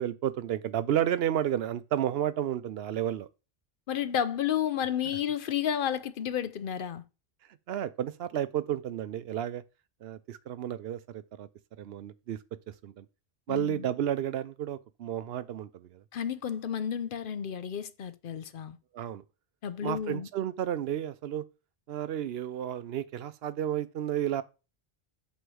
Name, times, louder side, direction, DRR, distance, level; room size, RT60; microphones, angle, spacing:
voice 1, 0.0-3.3 7.7-9.6 10.0-11.5 11.8-12.4 12.8-13.1 13.5-16.0 18.9-19.2 19.8-21.4 21.9-24.4, right 11 dB, 80° right, 0.8 m, -32 dB
voice 2, 3.9-7.0 13.5-13.9 16.1-18.8 19.6-20.3, left 9 dB, 60° left, 0.7 m, -31 dB
7.9 x 3.1 x 6.2 m
omnidirectional pair, 1.0 m